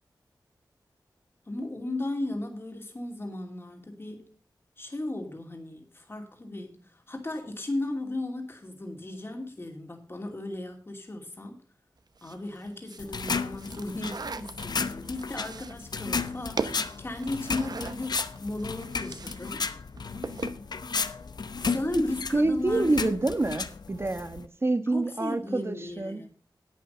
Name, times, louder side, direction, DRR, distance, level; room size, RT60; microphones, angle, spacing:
voice 1, 1.5-4.3 4.8-11.7 12.2-19.7 21.6-23.0 24.9-26.3, left 2 dB, 30° left, 2.6 m, -36 dB
sound 1, 12.2-19.5 19.8-20.7, right 4 dB, 60° right, 0.9 m, -39 dB
sound 2, 13.0-24.5, left 5 dB, 65° left, 0.8 m, -34 dB
voice 2, 22.3-26.2, right 2 dB, 30° right, 1.2 m, -27 dB
11.0 x 8.6 x 5.6 m
wide cardioid pair, 70°, 8 cm